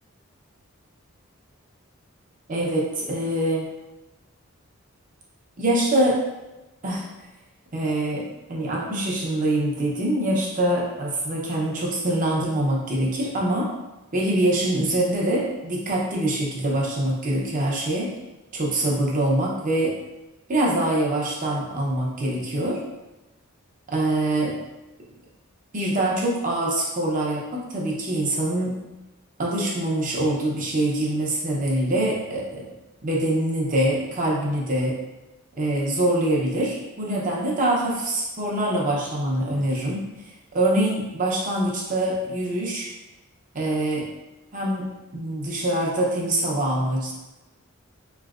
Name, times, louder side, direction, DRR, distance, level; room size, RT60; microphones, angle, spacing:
voice 1, 2.5-3.7 5.6-6.2 6.8-7.1 7.7-13.7 14.1-18.1 18.5-20.0 20.5-22.8 23.9-24.6 25.7-28.8 29.4-32.7 33.0-35.0 35.6-40.1 40.5-42.9 43.5-44.1 44.5-47.1, right 1 dB, 40° right, -3 dB, 0.7 m, -24 dB
4.2 x 3.1 x 2.5 m, 1.0 s
head